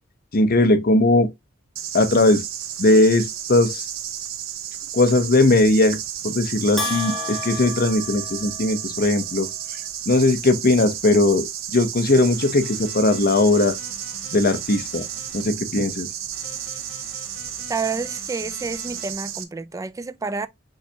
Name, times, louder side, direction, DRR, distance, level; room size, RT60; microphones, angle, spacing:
voice 1, 0.3-1.3 1.9-2.4 2.8-3.9 4.9-6.0 6.2-9.5 10.1-13.8 14.3-15.1 15.3-16.1, left 2 dB, 50° left, 0.8 m, -19 dB
sound 1, 1.7-19.4, right 10 dB, 85° right, 0.7 m, -32 dB
Bell, 6.8-8.9, left 2 dB, ahead, 1.5 m, -31 dB
sound 2, 12.0-15.4 16.3-19.1, left 3 dB, 70° left, 2.0 m, -45 dB
voice 2, 17.7-20.5, right 4 dB, 15° right, 0.3 m, -29 dB
5.5 x 3.3 x 2.8 m
head